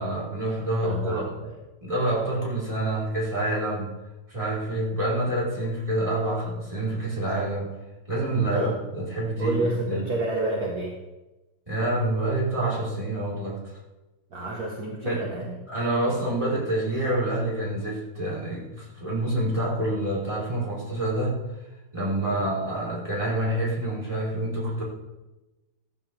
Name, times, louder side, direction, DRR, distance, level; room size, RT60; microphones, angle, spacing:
voice 1, 0.0-1.2 1.8-3.9 4.3-7.7 8.1-10.0 11.7-13.8 15.0-15.4 15.7-21.4 21.9-24.8, right 1 dB, 15° right, -6 dB, 5.1 m, -27 dB
voice 2, 0.8-1.5 8.3-8.8 9.4-11.0 14.3-15.6 22.3-22.5, right 2 dB, 55° right, -3 dB, 2.2 m, -30 dB
15.5 x 14.5 x 3.6 m, 1.1 s
omnidirectional pair, 2.0 m